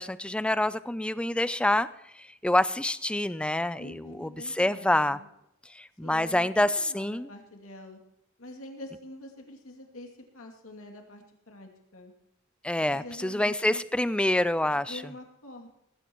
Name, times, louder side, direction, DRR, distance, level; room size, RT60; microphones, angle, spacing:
voice 1, 0.0-1.9 2.4-5.2 5.8-7.3 12.6-15.0, left 1 dB, 5° left, 15 dB, 0.4 m, -27 dB
voice 2, 3.8-5.3 6.0-8.0 8.4-12.1 12.8-13.8 14.7-15.7, left 1 dB, 70° left, 2 dB, 2.6 m, -46 dB
19.0 x 15.5 x 3.0 m, 0.81 s
head